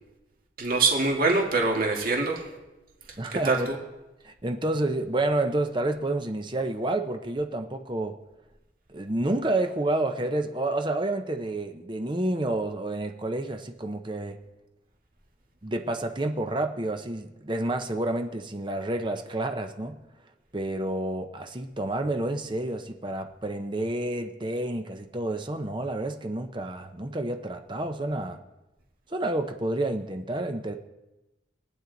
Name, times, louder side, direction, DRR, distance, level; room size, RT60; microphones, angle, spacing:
voice 1, 0.6-2.5 3.3-3.8, right 3 dB, 50° right, 0 dB, 1.9 m, -24 dB
voice 2, 3.2-3.7 4.2-8.2 8.9-14.4 15.6-20.0 20.5-28.4 29.1-30.7, right 2 dB, 25° right, 5 dB, 0.7 m, -29 dB
22.5 x 9.1 x 3.9 m, 1.0 s
head